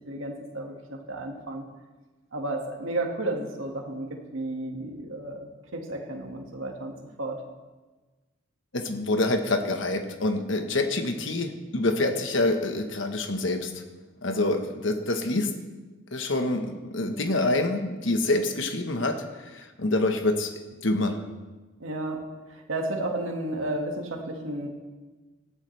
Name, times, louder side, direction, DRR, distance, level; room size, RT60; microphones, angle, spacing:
voice 1, 0.1-1.6 2.3-7.4 21.8-22.2 22.5-24.7, right 2 dB, 85° right, 1 dB, 1.9 m, -32 dB
voice 2, 8.7-13.8 14.2-15.5 16.1-20.5 20.8-21.2, left 2 dB, 70° left, 6 dB, 1.2 m, -26 dB
18.5 x 13.0 x 3.3 m, 1.2 s
head